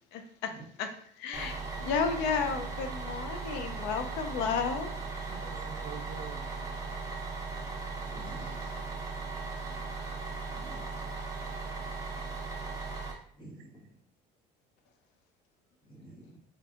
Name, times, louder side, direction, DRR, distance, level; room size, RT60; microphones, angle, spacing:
voice 1, 0.1-0.5 0.8-0.9 1.2-4.9, left 5 dB, 70° left, 7 dB, 0.4 m, -32 dB
Bus, 1.3-13.1, right 4 dB, 20° right, 0.7 m, -38 dB
voice 2, 5.3-7.1 8.2-8.8 13.6-13.7, right 7 dB, 90° right, 7 dB, 0.4 m, -48 dB
voice 3, 8.0-8.7 10.5-11.1 13.3-14.0 15.8-16.4, right 1 dB, 25° left, -2 dB, 1.1 m, -50 dB
3.8 x 2.5 x 2.4 m, 0.63 s
cardioid pair, 115°, 18 cm